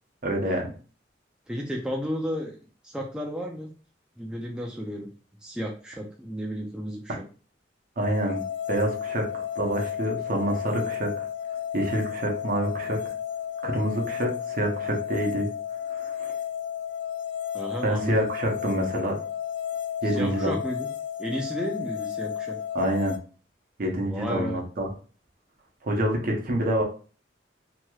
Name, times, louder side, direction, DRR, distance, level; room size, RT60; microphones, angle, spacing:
voice 1, 0.2-0.7 8.0-8.4 8.7-11.3 11.7-13.0 13.6-15.5 15.9-16.3 17.8-19.2 20.0-20.6 22.7-23.2 23.8-24.9 25.8-26.8, right 1 dB, 50° right, 1 dB, 0.8 m, -27 dB
voice 2, 1.5-2.6 2.8-3.7 4.2-5.1 5.4-7.1 17.5-18.3 20.0-20.9 21.2-22.6 24.0-24.6, equal, 5° right, -1 dB, 0.4 m, -33 dB
sound 1, 8.0-23.2, left 9 dB, 80° left, 0.3 m, -33 dB
3.0 x 2.9 x 2.3 m, 0.38 s
head